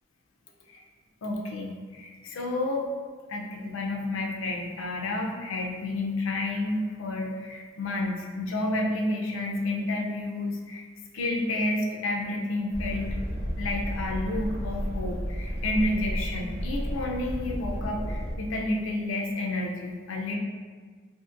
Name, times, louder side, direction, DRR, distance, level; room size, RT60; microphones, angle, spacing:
voice 1, 1.2-2.9 3.3-10.9 11.1-13.3 13.6-20.4, left 2 dB, 85° left, 1 dB, 0.4 m, -30 dB
sound 1, 12.7-18.3, equal, 30° left, 0.9 m, -32 dB
2.7 x 2.5 x 2.4 m, 1.6 s
head